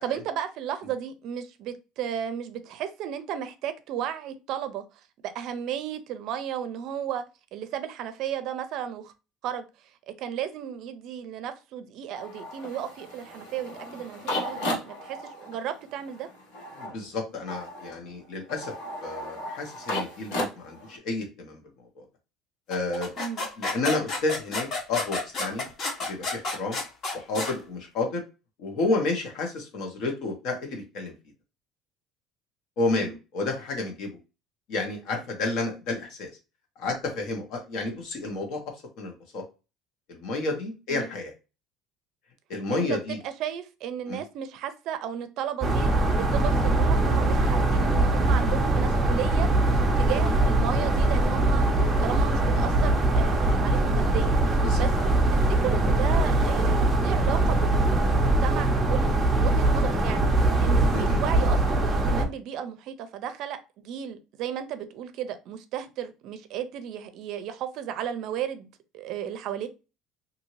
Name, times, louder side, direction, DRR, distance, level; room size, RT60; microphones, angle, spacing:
voice 1, 0.0-4.8 5.2-7.2 7.5-9.1 9.4-9.7 10.2-16.3 23.2-23.5 32.9-33.2 40.9-41.1 42.7-51.7 52.0-54.9 55.3-57.8 58.4-68.7 68.9-69.7, right 9 dB, 60° right, 0.5 m, -34 dB
sound 1, 12.1-21.0, left 1 dB, 80° left, 1.3 m, -35 dB
voice 2, 16.7-18.7 19.0-21.6 22.0-22.1 22.7-23.1 23.6-25.7 26.1-26.8 27.1-28.2 28.6-31.1 32.8-34.1 34.7-36.3 36.8-38.6 39.0-39.4 40.1-41.3 42.5-43.2 44.1-44.2 54.6-54.8 60.9-61.2, left 3 dB, 65° left, 1.1 m, -30 dB
sound 2, 22.7-27.6, left 3 dB, 40° left, 1.0 m, -31 dB
sound 3, 45.6-62.2, right 2 dB, 15° right, 0.6 m, -22 dB
2.7 x 2.6 x 3.0 m
cardioid pair, 135°, 0 cm